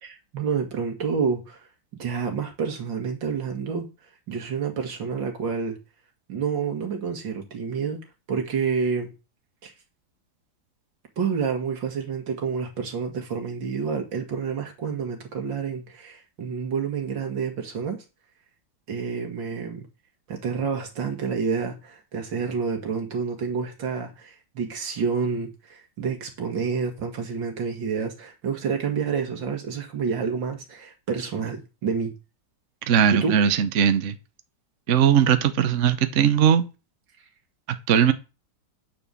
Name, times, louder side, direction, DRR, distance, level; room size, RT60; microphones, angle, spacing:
voice 1, 0.0-3.9 4.3-5.8 6.3-9.1 9.6-9.7 11.2-18.0 18.9-19.9 20.3-32.1 33.1-33.4, right 5 dB, 70° right, 2.5 m, -29 dB
voice 2, 32.9-34.1 34.9-36.7 37.9-38.1, right 8 dB, 50° right, 1.0 m, -19 dB
9.2 x 4.5 x 6.9 m
omnidirectional pair, 2.1 m